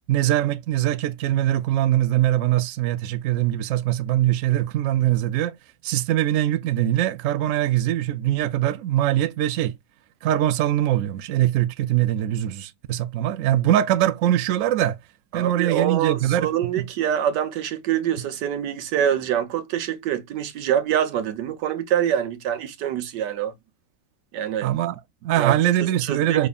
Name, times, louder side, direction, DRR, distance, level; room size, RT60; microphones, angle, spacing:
voice 1, 0.1-5.5 5.8-9.7 10.2-15.0 15.3-16.5 16.8-16.9 24.6-26.5, right 12 dB, 70° right, 0.8 m, -22 dB
voice 2, 15.3-23.5 24.3-24.7 25.4-26.5, right 10 dB, 90° right, 1.4 m, -25 dB
5.2 x 3.3 x 2.3 m
omnidirectional pair, 1.8 m